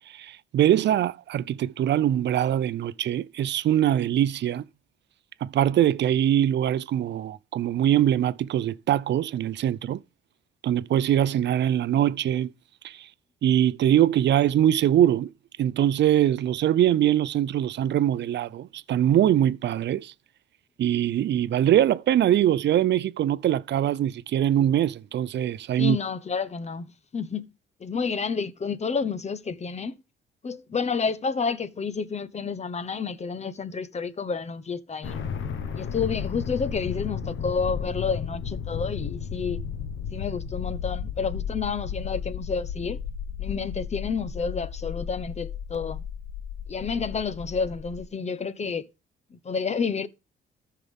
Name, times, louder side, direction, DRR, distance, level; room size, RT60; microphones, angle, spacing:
voice 1, 0.1-4.6 5.4-10.0 10.6-12.5 12.8-13.1 13.4-15.3 15.6-20.1 20.8-26.0, right 11 dB, 60° right, 0.6 m, -23 dB
voice 2, 25.8-26.9 27.1-27.5 27.8-30.0 30.4-35.2 35.7-39.6 40.1-43.0 43.4-46.0 46.7-48.9 49.3-50.1, left 5 dB, 35° left, 1.0 m, -30 dB
sound 1, 35.0-48.0, left 7 dB, 75° left, 1.3 m, -33 dB
14.0 x 5.7 x 3.5 m
cardioid pair, 90°, 20 cm